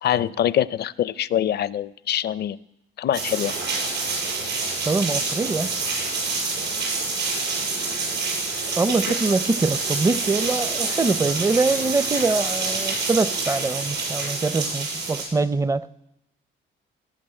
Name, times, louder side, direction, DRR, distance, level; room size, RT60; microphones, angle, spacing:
voice 1, 0.0-2.6 3.0-3.5, left 11 dB, 55° left, 18 dB, 0.5 m, -24 dB
sound 1, 3.1-15.2, right 3 dB, 65° right, 6.3 m, -27 dB
voice 2, 4.8-5.7 8.8-15.9, right 3 dB, 15° right, 16 dB, 0.5 m, -23 dB
18.0 x 6.0 x 8.8 m, 0.83 s
cardioid pair, 90°, 20 cm